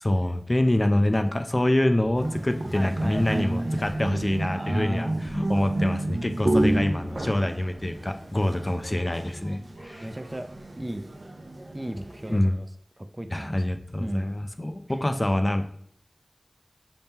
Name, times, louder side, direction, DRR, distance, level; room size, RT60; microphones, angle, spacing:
voice 1, 0.0-10.1 12.3-12.6 13.3-15.6, left 1 dB, 35° left, 7 dB, 0.4 m, -25 dB
voice 2, 0.9-1.3 2.7-3.7 4.5-5.2 10.0-10.5 10.8-11.1 11.7-12.7 13.0-13.6 14.0-14.3, right 1 dB, 30° right, 7 dB, 0.4 m, -36 dB
sound 1, 2.2-12.4, right 1 dB, 85° right, 0.5 m, -30 dB
5.4 x 2.9 x 3.5 m, 0.64 s
wide cardioid pair, 50°, 0 cm